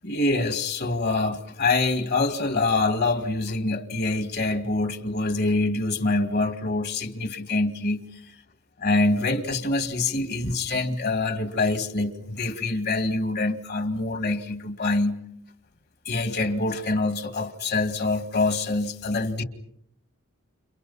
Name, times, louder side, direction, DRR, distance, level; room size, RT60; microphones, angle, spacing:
voice 1, 0.0-8.2 8.8-15.2 16.1-19.4, left 2 dB, 50° left, 2.1 m, -25 dB
29.5 x 29.5 x 5.6 m
head